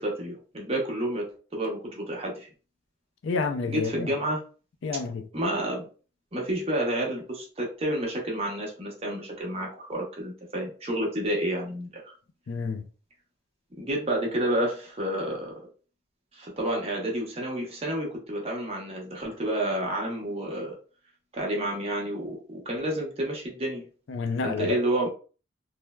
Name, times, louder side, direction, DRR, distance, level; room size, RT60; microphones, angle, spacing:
voice 1, 0.0-2.5 3.7-4.4 5.3-5.9 6.3-12.1 13.8-15.5 16.3-20.7 21.3-23.8 24.4-25.1, right 1 dB, 30° right, 0.7 m, -30 dB
voice 2, 3.2-4.1 4.8-5.2 12.5-12.8 24.1-24.8, left 4 dB, 65° left, 0.4 m, -29 dB
3.1 x 2.1 x 2.2 m
head